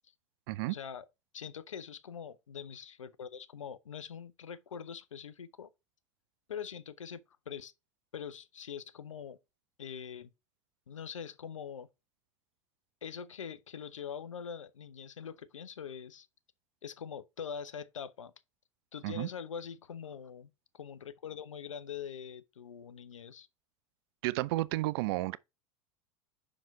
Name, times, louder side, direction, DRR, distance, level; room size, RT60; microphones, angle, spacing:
voice 1, 0.7-1.1 1.3-5.7 6.5-7.7 8.1-9.4 9.8-10.3 10.9-11.9 13.0-16.3 16.8-18.3 18.9-23.5, left 7 dB, 75° left, 0.6 m, -43 dB
voice 2, 24.2-25.4, right 19 dB, 50° right, 0.4 m, -32 dB
5.7 x 4.9 x 4.9 m
figure-of-eight pair, 80°, 16 cm